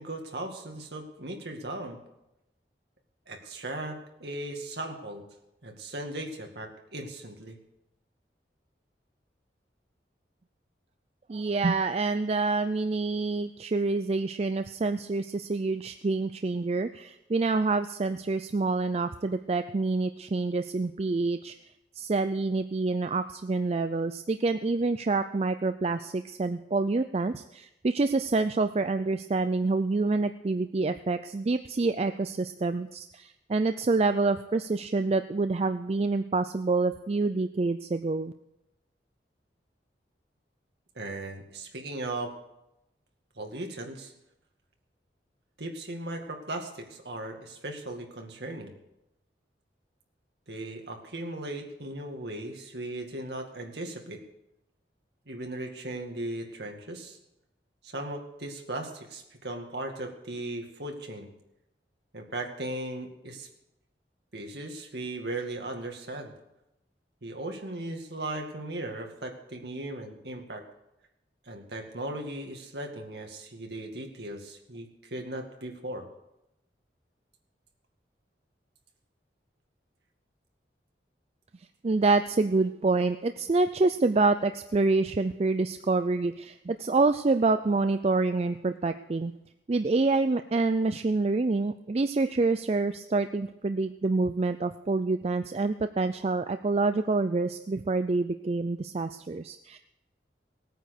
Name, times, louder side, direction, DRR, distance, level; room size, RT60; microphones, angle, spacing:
voice 1, 0.0-2.0 3.3-5.3 5.6-7.6 41.0-42.3 43.4-44.1 45.6-48.7 50.5-54.2 55.3-57.2 57.8-61.3 62.1-63.5 64.3-66.3 67.2-70.6 71.5-76.1, right 1 dB, 70° right, 3 dB, 2.2 m, -37 dB
voice 2, 11.3-21.5 22.0-38.3 81.8-89.3 89.7-99.8, right 3 dB, 35° right, 10 dB, 0.4 m, -27 dB
18.0 x 9.2 x 6.6 m, 0.88 s
head